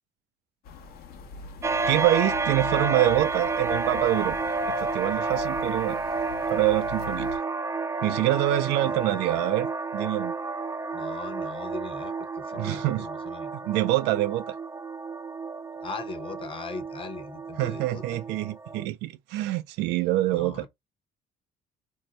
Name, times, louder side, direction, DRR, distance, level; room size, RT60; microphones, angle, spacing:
sound 1, 0.6-7.4, left 6 dB, 65° left, 0.9 m, -42 dB
sound 2, 1.6-18.9, right 3 dB, 15° right, 0.4 m, -31 dB
voice 1, 1.9-4.4 4.7-6.0 6.5-7.3 8.0-10.3 12.6-13.1 13.7-14.6 17.6-20.6, right 16 dB, 90° right, 0.4 m, -26 dB
voice 2, 8.8-9.4 10.9-13.8 15.8-18.2 20.3-20.7, left 4 dB, 30° left, 0.8 m, -40 dB
2.7 x 2.1 x 3.9 m
cardioid pair, 110°, 17 cm